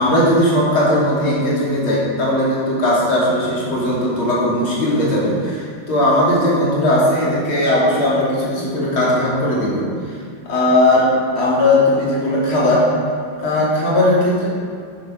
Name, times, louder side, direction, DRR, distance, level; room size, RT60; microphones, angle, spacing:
voice 1, 0.0-9.9 10.5-12.9 13.4-14.5, left 1 dB, 70° left, -6 dB, 3.9 m, -17 dB
9.3 x 9.2 x 6.3 m, 2.3 s
omnidirectional pair, 2.4 m